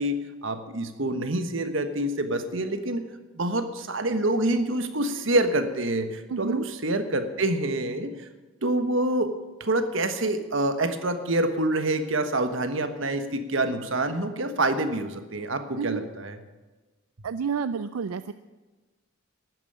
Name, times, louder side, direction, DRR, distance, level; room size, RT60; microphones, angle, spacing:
voice 1, 0.0-3.1 3.3-8.1 8.6-9.3 9.6-16.4, right 1 dB, 65° right, 8 dB, 1.3 m, -26 dB
voice 2, 6.3-6.6 15.8-16.0 17.2-18.3, right 6 dB, 90° right, 12 dB, 0.4 m, -30 dB
12.0 x 9.2 x 8.8 m, 1.2 s
head